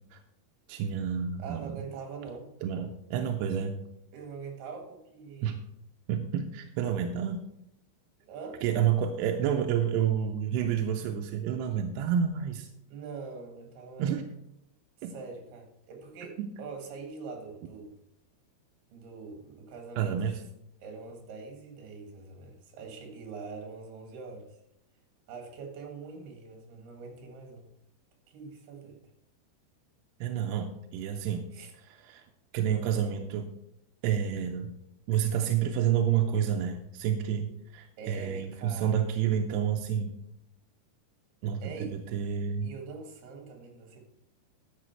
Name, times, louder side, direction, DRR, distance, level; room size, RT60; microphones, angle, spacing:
voice 1, 0.7-1.8 2.6-3.8 5.4-5.6 6.1-7.4 8.6-12.7 14.0-14.3 15.0-15.2 16.4-16.5 20.0-20.4 30.2-31.5 31.8-32.2 32.5-33.5 34.0-34.7 35.1-40.2 41.4-42.7, right 8 dB, 85° right, 4 dB, 2.8 m, -29 dB
voice 2, 1.4-2.5 4.1-5.5 8.2-8.6 12.9-14.2 15.0-17.9 18.9-20.4 20.8-24.6 25.3-27.7 28.3-29.0 31.5-31.7 38.0-39.0 41.6-42.1 42.6-44.0, right 4 dB, 70° right, 3 dB, 3.7 m, -43 dB
11.5 x 7.5 x 4.5 m, 0.80 s
omnidirectional pair, 4.8 m